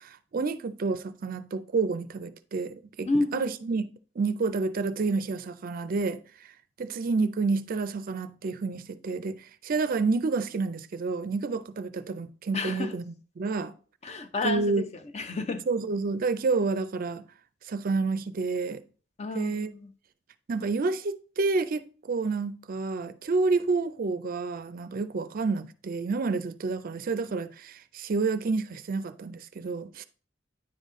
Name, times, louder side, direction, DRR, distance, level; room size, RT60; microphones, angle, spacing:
voice 1, 0.0-3.9 4.2-6.5 6.8-13.7 14.4-14.8 15.7-17.2 17.7-18.8 19.3-19.7 20.5-30.0, right 4 dB, 45° right, 0.4 m, -29 dB
voice 2, 3.1-3.5 12.5-12.9 14.0-14.8 15.1-15.6 19.2-19.9, left 3 dB, 35° left, 0.6 m, -30 dB
9.6 x 4.1 x 3.6 m
head